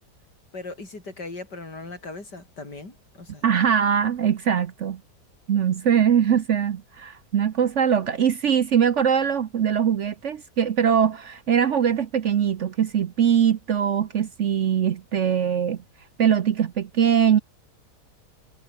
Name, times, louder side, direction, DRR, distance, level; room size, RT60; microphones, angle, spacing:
voice 1, 0.5-3.5, left 3 dB, 80° left, 5.9 m, -38 dB
voice 2, 3.4-5.0 5.5-15.8 16.2-17.4, right 8 dB, 55° right, 1.0 m, -22 dB
omnidirectional pair, 1.8 m